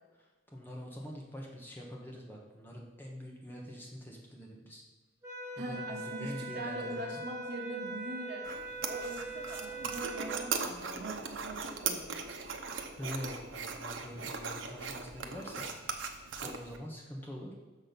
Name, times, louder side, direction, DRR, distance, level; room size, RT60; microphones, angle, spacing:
voice 1, 0.2-4.8 5.6-7.2 13.0-15.9 16.4-17.5, equal, 10° left, -2 dB, 1.2 m, -45 dB
sound 1, 5.2-10.4, right 2 dB, 15° right, 1.2 m, -42 dB
voice 2, 5.6-8.5 8.9-12.2, right 2 dB, 55° right, 0 dB, 1.4 m, -42 dB
sound 2, 8.4-16.8, right 5 dB, 85° right, 0.8 m, -39 dB
6.4 x 6.1 x 5.3 m, 1.3 s
head